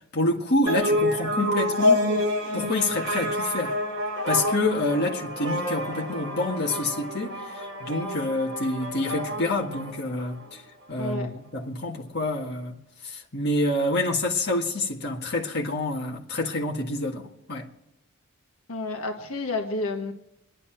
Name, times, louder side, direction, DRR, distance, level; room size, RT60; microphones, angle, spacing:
voice 1, 0.1-2.1 2.5-3.8 4.3-10.6 10.9-12.8 13.0-17.7, left 2 dB, 50° left, 1.8 m, -27 dB
sound 1, 0.7-10.4, left 1 dB, 55° right, 4.9 m, -28 dB
voice 2, 11.0-11.3 18.7-20.1, left 3 dB, 70° left, 1.6 m, -30 dB
26.5 x 10.5 x 4.6 m
head